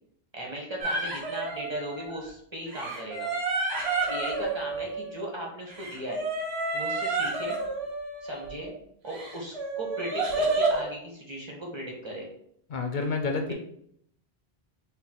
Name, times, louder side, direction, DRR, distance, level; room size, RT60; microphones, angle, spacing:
voice 1, 0.3-3.3 4.1-6.2 6.7-7.5 8.2-8.7 9.0-12.3 13.5-13.6, right 1 dB, 25° right, -2 dB, 1.2 m, -37 dB
sound 1, 0.8-2.3 2.7-5.4 5.7-8.7 9.1-10.9, right 3 dB, 75° right, 1.3 m, -30 dB
voice 2, 12.7-13.5, left 4 dB, 60° left, 4 dB, 0.6 m, -29 dB
5.4 x 2.3 x 3.8 m, 0.69 s
omnidirectional pair, 1.1 m